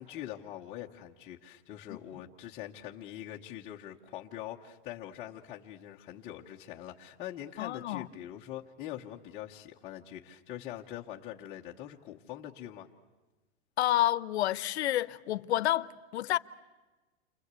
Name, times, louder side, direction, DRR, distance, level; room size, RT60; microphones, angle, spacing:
voice 1, 0.0-12.9, left 12 dB, 20° left, 0.9 m, -43 dB
voice 2, 7.6-8.1 13.8-16.4, left 14 dB, 75° left, 0.9 m, -29 dB
29.5 x 25.0 x 8.2 m
supercardioid pair, 175°, 33 cm